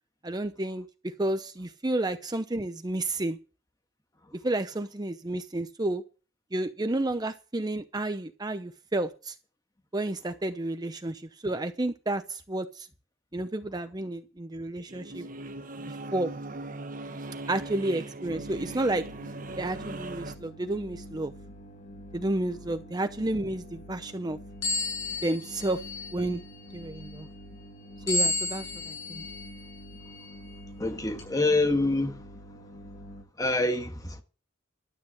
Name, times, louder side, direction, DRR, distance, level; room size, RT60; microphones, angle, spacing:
voice 1, 0.2-3.4 4.4-6.0 6.5-9.4 9.9-12.9 13.3-15.3 15.9-16.3 17.5-19.0 19.6-21.3 22.1-24.4 25.2-25.8 26.1-26.4 26.7-27.3 28.1-29.2, right 2 dB, 20° right, 0.7 m, -31 dB
sound 1, 14.9-20.3, right 2 dB, 45° right, 1.1 m, -39 dB
sound 2, 18.2-33.2, equal, 40° left, 1.7 m, -46 dB
sound 3, 24.6-26.3 28.1-29.5 30.1-30.3 31.2-31.3, left 2 dB, 75° left, 7.3 m, -31 dB
voice 2, 30.8-32.1 33.4-34.2, left 2 dB, 20° left, 1.5 m, -26 dB
12.5 x 8.1 x 7.5 m
head